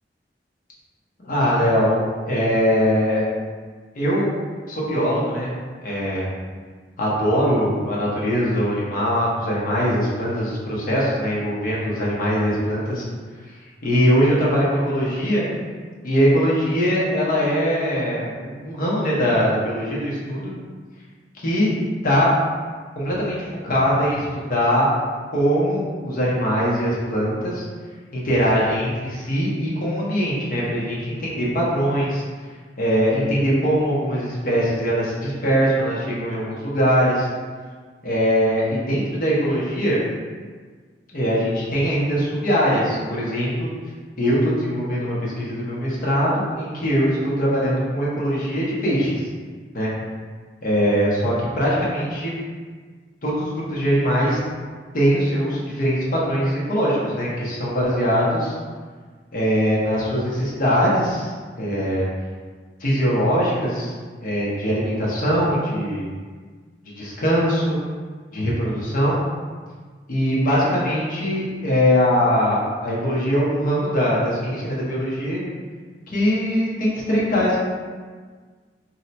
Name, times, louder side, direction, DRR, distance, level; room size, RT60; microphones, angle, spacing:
voice 1, 1.2-2.0 2.3-3.2 3.9-4.3 4.7-5.5 5.8-6.3 7.0-13.0 13.8-15.4 16.0-20.5 21.3-21.7 22.0-22.3 22.9-23.4 23.6-24.9 25.3-27.6 28.1-32.2 32.8-37.3 38.0-40.0 41.1-43.7 44.2-49.2 49.7-49.9 50.6-52.3 53.2-54.4 54.9-58.5 59.3-62.1 62.8-63.9 64.2-66.1 67.0-67.8 68.3-69.2 70.1-75.4 76.1-77.6, equal, 50° left, -6 dB, 0.8 m, -21 dB
2.7 x 2.1 x 4.0 m, 1.5 s
head